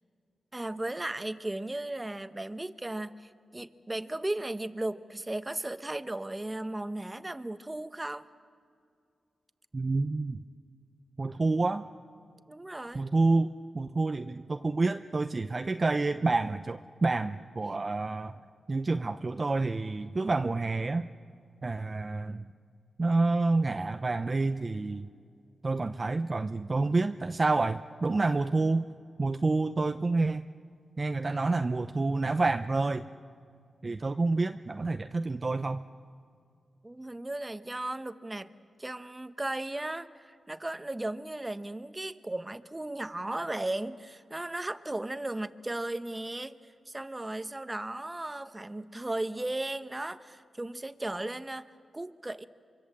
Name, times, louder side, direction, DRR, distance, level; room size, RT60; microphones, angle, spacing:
voice 1, 0.5-8.3 12.5-13.0 36.8-38.5 38.8-46.6 46.9-51.7 51.9-52.5, right 1 dB, 20° right, 11 dB, 1.2 m, -36 dB
voice 2, 9.7-10.4 11.2-11.8 12.9-18.3 18.7-21.1 21.6-22.5 23.0-25.1 25.6-28.9 29.2-30.5 31.0-33.0 33.8-35.8, right 3 dB, 40° right, 9 dB, 0.7 m, -28 dB
25.5 x 23.5 x 7.7 m, 2.3 s
supercardioid pair, 45°, 0 cm